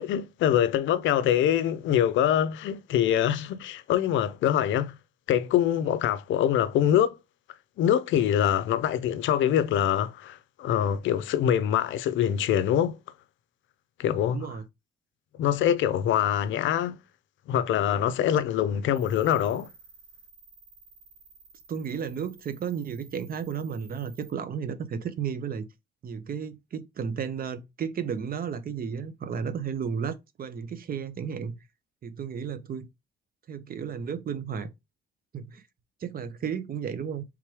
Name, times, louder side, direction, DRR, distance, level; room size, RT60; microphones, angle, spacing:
voice 1, 0.0-5.0 5.3-7.2 7.8-13.0 14.0-14.5 15.4-17.0 17.5-19.7, left 10 dB, 75° left, 0.5 m, -24 dB
voice 2, 14.3-14.6 21.7-25.6 26.0-31.6 32.0-32.9 33.5-34.7 35.3-35.6 36.0-37.2, right 7 dB, 45° right, 0.7 m, -33 dB
sound 1, 18.9-24.3, right 5 dB, 80° right, 1.5 m, -54 dB
3.6 x 3.0 x 4.7 m
cardioid pair, 90°, 20 cm